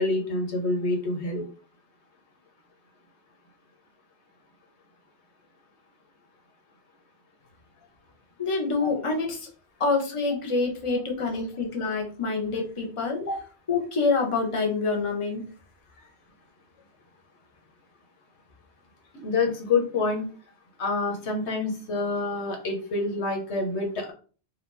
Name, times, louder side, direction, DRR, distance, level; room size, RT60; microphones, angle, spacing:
voice 1, 0.0-1.4 8.8-8.9 13.3-13.4 19.1-20.2 20.8-24.1, left 3 dB, 90° left, 2 dB, 1.4 m, -27 dB
voice 2, 8.4-9.5 9.8-13.2 13.7-15.4, left 4 dB, 30° left, 1 dB, 0.9 m, -26 dB
4.3 x 2.5 x 4.0 m, 0.38 s
omnidirectional pair, 1.1 m